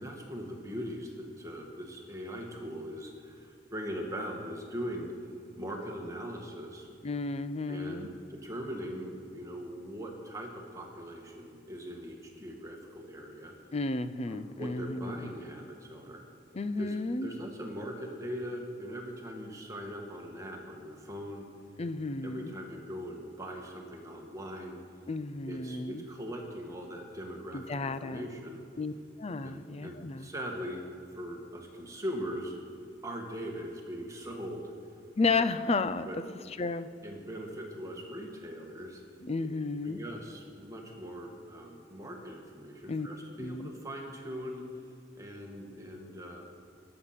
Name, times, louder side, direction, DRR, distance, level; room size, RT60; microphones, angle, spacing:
voice 1, 0.0-5.1 5.5-6.9 7.7-13.5 14.3-16.2 16.8-21.5 22.2-24.8 25.5-28.6 29.4-30.8 31.1-32.5 33.0-34.7 35.3-35.4 36.0-36.2 37.0-39.0 39.8-44.6 45.1-46.5, equal, 20° right, 1 dB, 1.7 m, -41 dB
voice 2, 7.0-8.1 13.7-15.3 16.5-17.3 21.8-22.6 25.1-26.0 27.5-28.3 28.8-28.9 29.2-30.3 35.2-36.1 36.6-36.9 39.2-40.0 42.9-43.1 43.4-43.7, left 3 dB, 35° left, 13 dB, 0.5 m, -32 dB
21.5 x 7.9 x 5.9 m, 2.3 s
head